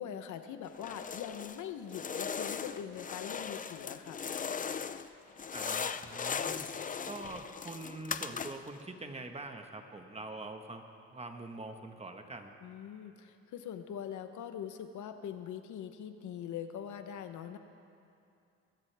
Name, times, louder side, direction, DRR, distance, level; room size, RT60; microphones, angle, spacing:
voice 1, 0.0-4.2 12.6-17.6, left 9 dB, 75° left, 8 dB, 0.9 m, -42 dB
sound 1, 0.7-1.6 1.9-5.1 5.4-8.8, left 6 dB, 25° left, 0.5 m, -38 dB
voice 2, 5.5-6.7 7.1-10.8 11.1-12.5, right 2 dB, 20° right, 5 dB, 1.4 m, -44 dB
23.0 x 16.0 x 3.5 m, 2.6 s
cardioid pair, 90°, 30 cm